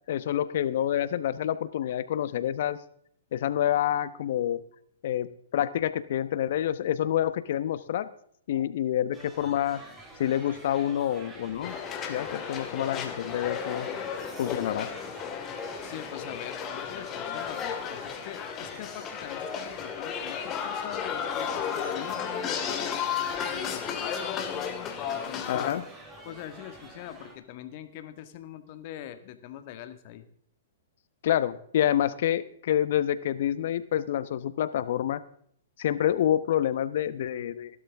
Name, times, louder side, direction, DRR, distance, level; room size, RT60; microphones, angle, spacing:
voice 1, 0.1-2.8 3.3-4.6 5.0-5.3 5.5-8.1 8.5-9.8 10.2-11.7 12.1-13.9 14.4-14.9 25.5-25.8 31.2-35.2 35.8-37.8, left 11 dB, 60° left, 14 dB, 1.0 m, -27 dB
sound 1, 9.1-27.4, right 2 dB, 15° right, 3.0 m, -48 dB
sound 2, 11.6-25.7, left 7 dB, 25° left, 2.1 m, -34 dB
voice 2, 15.8-23.0 23.5-25.7 26.2-30.3, left 11 dB, 45° left, 9 dB, 1.6 m, -43 dB
16.5 x 12.5 x 3.6 m, 0.63 s
hypercardioid pair, 140°, 0 cm